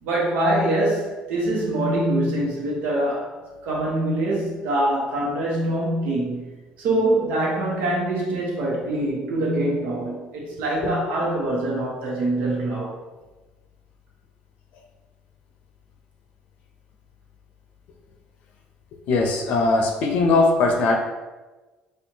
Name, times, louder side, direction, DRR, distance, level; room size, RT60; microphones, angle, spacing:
voice 1, 0.0-3.3 3.6-6.5 6.8-12.9, right 1 dB, 75° right, -3 dB, 1.0 m, -24 dB
voice 2, 19.1-21.0, left 3 dB, 70° left, 3 dB, 0.6 m, -19 dB
4.4 x 2.4 x 2.8 m, 1.2 s
cardioid pair, 120°, 3 cm